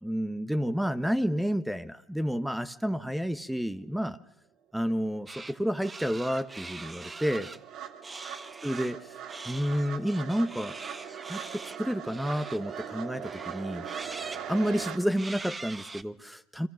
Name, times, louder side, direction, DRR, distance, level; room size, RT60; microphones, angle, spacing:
voice 1, 0.0-4.2 4.7-7.5 8.6-9.2 9.5-10.8 11.3-13.9 14.5-16.7, equal, ahead, 11 dB, 1.3 m, -30 dB
sound 1, 4.9-5.0 5.3-15.0, right 8 dB, 55° right, 2.5 m, -41 dB
sound 2, 5.3-5.6 5.8-7.6 8.0-8.9 9.3-12.9 13.2-14.4 15.1-16.0, right 3 dB, 20° right, 1.2 m, -43 dB
29.5 x 24.5 x 6.5 m, 0.72 s
supercardioid pair, 85°, 0 cm